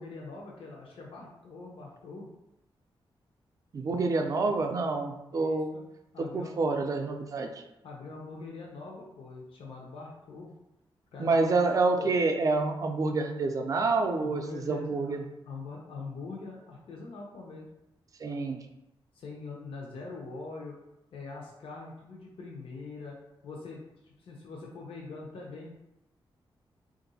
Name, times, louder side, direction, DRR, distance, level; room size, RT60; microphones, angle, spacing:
voice 1, 0.0-2.3 5.3-5.9 6.1-6.5 7.8-10.5 11.1-12.1 14.1-15.2 15.5-17.7 19.1-20.8 21.1-23.2 23.4-25.7, left 3 dB, 85° left, -2 dB, 0.6 m, -43 dB
voice 2, 3.7-5.7 6.2-7.5 11.2-15.2 18.2-18.6, right 3 dB, 40° right, 4 dB, 0.4 m, -28 dB
3.6 x 2.5 x 4.0 m, 0.90 s
wide cardioid pair, 170°, 9 cm